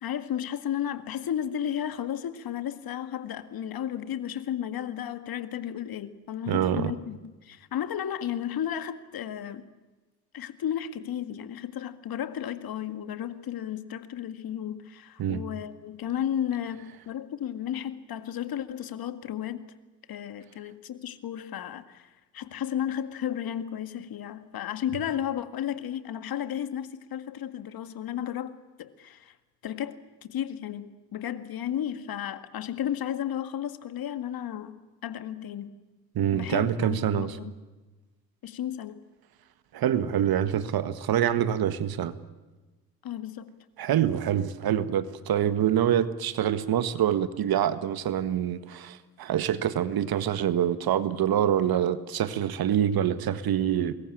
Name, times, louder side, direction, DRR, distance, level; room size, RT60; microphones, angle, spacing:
voice 1, 0.0-9.7 10.3-19.7 20.1-29.3 29.6-35.8 36.3-37.5 38.4-39.0 43.0-43.6, left 10 dB, 50° left, 2.0 m, -33 dB
voice 2, 6.5-6.9 15.2-15.4 36.2-37.4 39.7-42.1 43.8-53.9, right 10 dB, 50° right, 1.7 m, -26 dB
25.5 x 21.5 x 8.8 m
hypercardioid pair, 65°, 46 cm